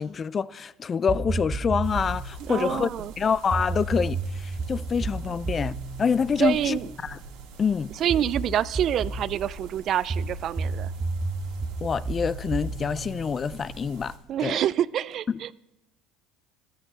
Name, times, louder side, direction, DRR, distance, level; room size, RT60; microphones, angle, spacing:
voice 1, 0.0-2.9 3.2-7.2 7.6-7.9 11.8-14.2 14.4-14.6 15.3-15.4, left 6 dB, 35° left, 0.3 m, -26 dB
sound 1, 1.1-2.4 3.5-7.2 8.1-9.3 10.1-14.0, right 3 dB, 25° right, 1.0 m, -32 dB
sound 2, 1.8-14.2, right 4 dB, 75° right, 2.3 m, -44 dB
voice 2, 2.4-3.1 6.4-6.9 8.0-10.9 14.3-15.5, right 10 dB, 50° right, 0.4 m, -27 dB
12.5 x 12.5 x 4.0 m
hypercardioid pair, 80°, 0 cm